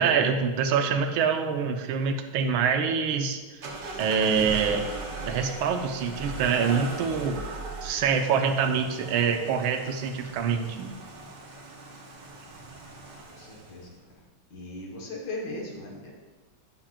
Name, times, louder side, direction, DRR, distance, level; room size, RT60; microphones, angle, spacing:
voice 1, 0.0-3.4 4.0-4.9 5.3-7.4 7.8-10.9, right 6 dB, 80° right, 5 dB, 1.4 m, -25 dB
sound 1, 3.6-13.8, right 2 dB, 60° right, 1.6 m, -39 dB
voice 2, 13.1-13.9 14.5-16.1, left 2 dB, 55° left, -3 dB, 1.9 m, -38 dB
10.0 x 5.8 x 2.4 m, 1.2 s
omnidirectional pair, 2.3 m